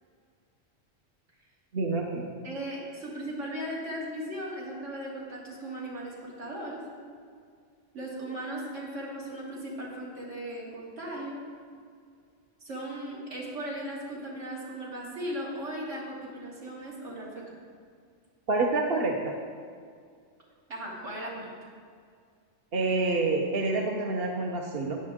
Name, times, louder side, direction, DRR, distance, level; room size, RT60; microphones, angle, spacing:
voice 1, 1.7-2.2 18.5-19.3 22.7-25.0, right 3 dB, 55° right, 1 dB, 1.1 m, -27 dB
voice 2, 2.4-6.8 7.9-11.4 12.6-17.6 20.7-21.5, right 1 dB, 75° right, -5 dB, 2.8 m, -37 dB
13.0 x 9.9 x 3.6 m, 2.1 s
omnidirectional pair, 1.3 m